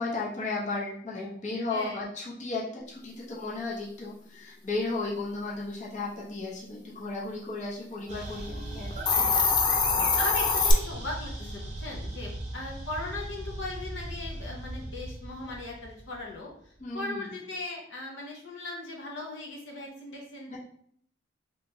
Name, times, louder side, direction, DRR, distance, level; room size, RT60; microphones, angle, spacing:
voice 1, 0.0-8.9 16.8-17.3 20.5-20.6, left 3 dB, 40° left, -5 dB, 0.8 m, -34 dB
voice 2, 1.7-2.0 9.2-9.3 10.1-16.5 16.9-20.5, left 2 dB, 70° left, -1 dB, 0.7 m, -38 dB
sound 1, 8.1-16.6, right 1 dB, 40° right, 0.7 m, -38 dB
Hiss, 8.9-10.7, left 5 dB, 25° left, 0.4 m, -24 dB
3.3 x 3.0 x 2.7 m, 0.62 s
head